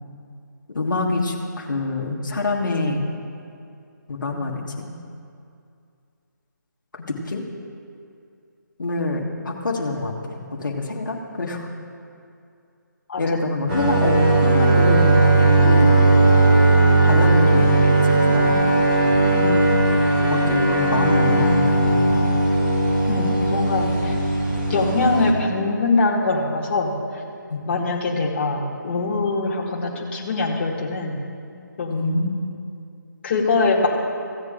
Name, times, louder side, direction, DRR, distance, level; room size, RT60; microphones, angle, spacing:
voice 1, 0.7-3.0 4.1-4.9 6.9-7.4 8.8-11.7 13.2-16.3 17.0-18.7 20.3-22.2 27.5-27.6 31.9-32.4, left 2 dB, 70° left, -1 dB, 1.6 m, -25 dB
sound 1, 13.7-25.3, right 2 dB, 30° right, 2.5 m, -17 dB
voice 2, 23.1-24.2 24.7-26.9 27.7-31.2 31.8-32.2 33.2-33.9, left 3 dB, 35° left, -3 dB, 1.9 m, -23 dB
15.5 x 8.1 x 3.8 m, 2.5 s
figure-of-eight pair, 155°, 11 cm